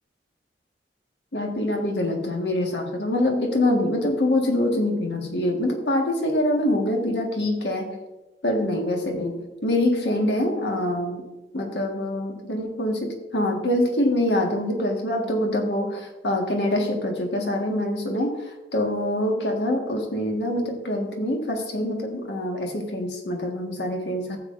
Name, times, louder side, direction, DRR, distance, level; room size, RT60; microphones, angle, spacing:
voice 1, 1.3-8.0 8.4-11.2 11.5-18.3 18.7-24.4, left 1 dB, 85° left, 2 dB, 1.6 m, -25 dB
14.0 x 7.4 x 2.6 m, 1.1 s
head